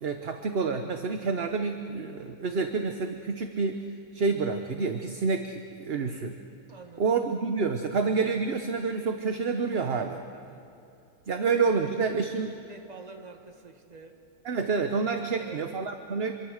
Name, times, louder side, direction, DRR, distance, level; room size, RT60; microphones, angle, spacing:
voice 1, 0.0-3.8 4.1-6.4 7.0-10.2 11.3-12.5 14.4-16.3, right 4 dB, 45° right, 6 dB, 1.1 m, -28 dB
voice 2, 6.7-7.5 9.7-10.7 11.3-12.2 12.7-14.2 15.2-15.7, right 3 dB, 25° right, 3 dB, 1.9 m, -48 dB
26.5 x 24.0 x 6.5 m, 2.7 s
omnidirectional pair, 1.6 m